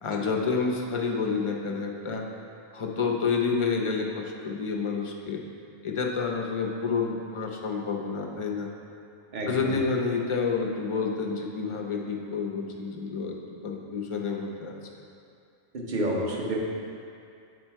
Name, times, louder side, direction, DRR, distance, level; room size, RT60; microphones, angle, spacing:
voice 1, 0.0-2.2 2.7-5.4 5.8-8.7 9.5-13.4 13.6-15.0, left 5 dB, 45° left, 0 dB, 0.4 m, -29 dB
voice 2, 9.3-9.8 15.7-16.6, right 1 dB, 40° right, -2 dB, 1.0 m, -29 dB
7.5 x 4.5 x 4.4 m, 2.5 s
omnidirectional pair, 1.3 m